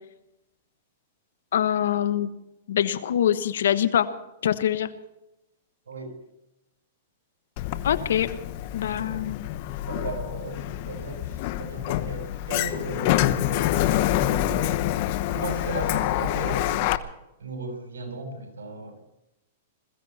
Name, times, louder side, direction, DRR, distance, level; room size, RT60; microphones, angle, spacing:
voice 1, 1.5-2.3 2.7-4.1 4.4-4.9 7.8-8.3 8.7-9.5, left 10 dB, 75° left, 12 dB, 1.2 m, -24 dB
voice 2, 5.9-6.2 9.0-9.2 9.9-11.3 11.6-14.8 15.3-17.0 17.4-19.0, right 2 dB, 90° right, 2 dB, 7.8 m, -36 dB
Sliding door, 7.6-17.0, left 14 dB, 50° left, 1.0 m, -27 dB
21.0 x 15.5 x 4.3 m, 0.89 s
hypercardioid pair, 130°, 0 cm